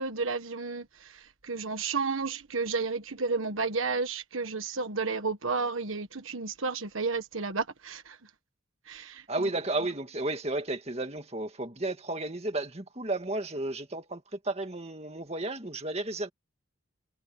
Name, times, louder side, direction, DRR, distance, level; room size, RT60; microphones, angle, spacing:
voice 1, 0.0-8.2 8.9-9.5, right 4 dB, 80° right, 1.5 m, -32 dB
voice 2, 9.3-16.3, right 2 dB, 30° right, 2.0 m, -33 dB
head